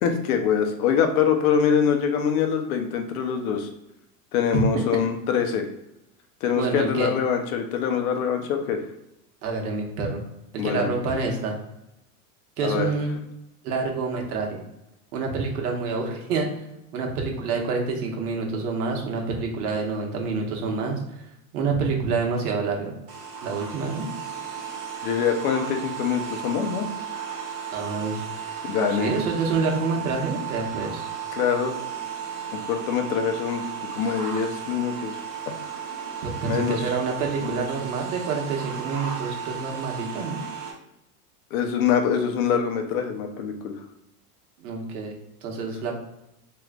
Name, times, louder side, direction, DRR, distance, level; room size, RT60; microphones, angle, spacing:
voice 1, 0.0-3.7 4.3-5.7 6.4-8.8 10.6-10.9 12.6-12.9 25.0-26.9 28.6-29.1 31.3-31.7 32.5-35.2 36.4-36.9 37.4-37.7 41.5-43.8, left 7 dB, 70° left, 5 dB, 0.8 m, -24 dB
voice 2, 6.5-7.1 9.4-10.2 10.6-11.6 12.6-13.2 13.6-14.6 15.1-16.5 16.9-21.2 21.5-22.9 23.4-24.1 27.7-28.3 28.9-31.1 36.2-40.4 44.6-45.1 45.4-46.0, right 4 dB, 75° right, 1 dB, 1.2 m, -27 dB
sound 1, 23.1-40.7, right 7 dB, 30° right, 1.3 m, -35 dB
3.2 x 3.1 x 2.4 m, 0.86 s
supercardioid pair, 125°, 46 cm